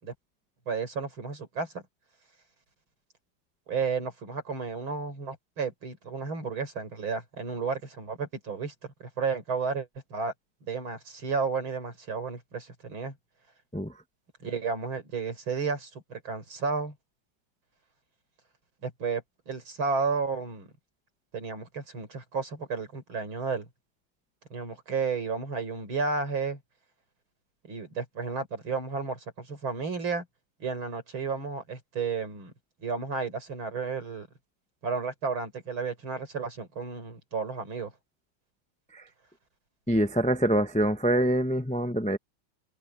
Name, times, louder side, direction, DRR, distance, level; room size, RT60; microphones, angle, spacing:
voice 1, 0.7-1.8 3.7-8.7 9.0-10.3 10.6-13.2 14.4-17.0 18.8-20.7 21.3-23.7 24.5-26.6 27.6-30.3 30.6-32.5 32.8-34.3 34.8-37.9, right 5 dB, 85° right, 5.5 m, -32 dB
voice 2, 39.9-42.2, right 1 dB, 10° left, 0.4 m, -25 dB
omnidirectional pair, 2.2 m